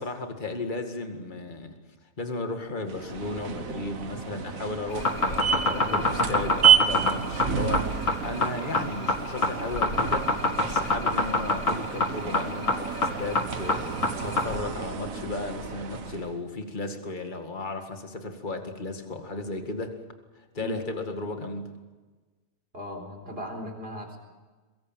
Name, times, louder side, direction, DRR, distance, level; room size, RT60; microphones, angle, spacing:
voice 1, 0.0-1.8 2.2-19.9 20.4-21.8, left 2 dB, 35° left, 5 dB, 2.2 m, -35 dB
sound 1, 2.8-16.4, right 8 dB, 75° right, 1.7 m, -30 dB
sound 2, 4.9-14.6, left 3 dB, 65° left, 2.4 m, -24 dB
voice 2, 22.7-24.2, equal, 45° right, 3 dB, 4.5 m, -37 dB
23.5 x 22.0 x 7.6 m, 1.3 s
omnidirectional pair, 1.4 m